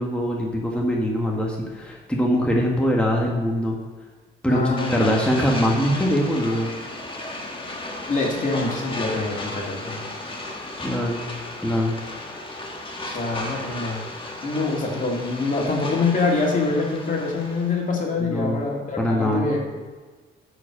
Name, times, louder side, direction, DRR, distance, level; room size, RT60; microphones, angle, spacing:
voice 1, 0.0-3.8 4.4-6.7 10.8-11.3 11.6-12.0 18.2-18.6 19.0-19.5, equal, 5° left, -2 dB, 1.5 m, -22 dB
voice 2, 4.5-5.1 8.1-10.0 13.0-14.0 14.4-19.6, left 3 dB, 40° left, -1 dB, 2.3 m, -25 dB
sound 1, 4.8-17.8, left 2 dB, 25° left, 1.5 m, -34 dB
9.5 x 5.1 x 6.3 m, 1.4 s
cardioid pair, 90°, 20 cm